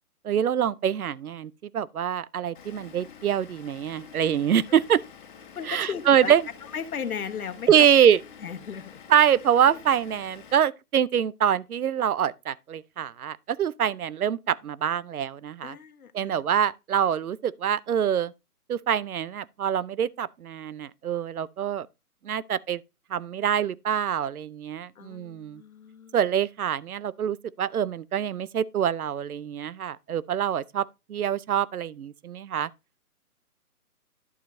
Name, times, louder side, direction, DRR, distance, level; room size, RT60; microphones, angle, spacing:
voice 1, 0.2-5.0 5.7-6.4 7.7-8.2 9.1-15.8 16.1-18.3 18.7-21.9 22.2-22.8 23.1-25.6 26.1-32.7, right 9 dB, 70° right, 0.7 m, -25 dB
Vehicle / Engine, 2.5-10.5, left 7 dB, 30° left, 1.6 m, -48 dB
voice 2, 5.5-6.4 6.6-7.7 8.4-9.0 9.7-9.8 15.6-16.4 24.9-26.2, left 7 dB, 65° left, 1.3 m, -36 dB
11.0 x 7.3 x 2.6 m
hypercardioid pair, 155°, 46 cm